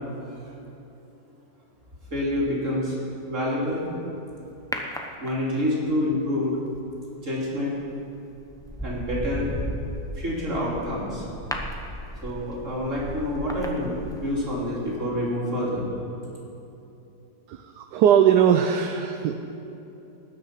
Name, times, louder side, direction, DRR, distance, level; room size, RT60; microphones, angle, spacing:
voice 1, 2.1-2.9 3.3-3.8 5.2-6.6 7.2-7.8 8.8-9.5 10.2-11.2 12.2-15.9, left 1 dB, 45° right, -6 dB, 3.3 m, -27 dB
sound 1, 4.7-5.8 7.6-7.9 8.4-14.6 14.9-15.0, equal, 5° left, 0.3 m, -35 dB
voice 2, 17.5-19.4, right 9 dB, 75° right, 7 dB, 1.2 m, -20 dB
19.0 x 6.7 x 5.8 m, 2.9 s
omnidirectional pair, 1.9 m